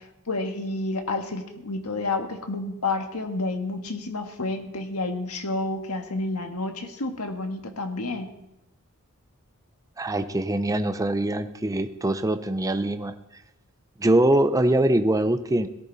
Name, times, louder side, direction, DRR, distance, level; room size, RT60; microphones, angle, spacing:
voice 1, 0.0-8.3, left 2 dB, 75° left, 5 dB, 1.7 m, -30 dB
voice 2, 10.0-13.1 14.0-15.7, right 1 dB, 15° right, 9 dB, 0.6 m, -23 dB
17.5 x 14.0 x 4.1 m, 0.88 s
head